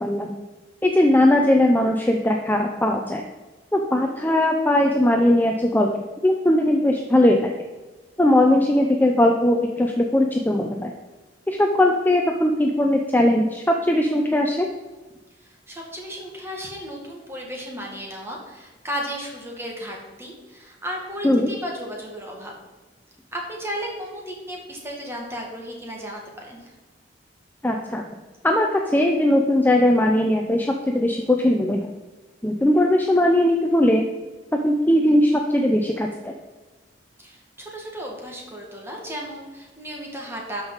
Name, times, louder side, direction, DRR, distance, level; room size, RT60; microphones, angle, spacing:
voice 1, 0.0-0.3 0.8-3.2 3.7-5.9 6.2-7.5 8.2-10.9 11.5-14.7 21.2-21.5 27.6-28.0 28.4-31.9 32.4-34.0 34.6-36.3, left 1 dB, 10° left, 2 dB, 0.5 m, -19 dB
voice 2, 15.4-22.5 23.3-26.7 37.2-40.6, equal, 15° right, -1 dB, 1.9 m, -34 dB
12.0 x 5.2 x 4.0 m, 1.2 s
head